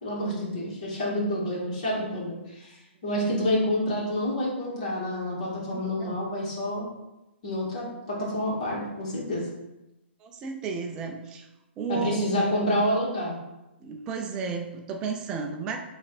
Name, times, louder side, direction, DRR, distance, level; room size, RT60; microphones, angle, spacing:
voice 1, 0.0-2.7 3.0-6.9 7.4-9.5 11.9-13.4, left 1 dB, 35° left, -5 dB, 2.3 m, -28 dB
voice 2, 5.7-6.2 10.2-11.5 11.8-12.9 13.8-15.8, right 5 dB, 10° right, 3 dB, 0.4 m, -33 dB
7.4 x 3.3 x 4.1 m, 0.96 s
hypercardioid pair, 180°, 6 cm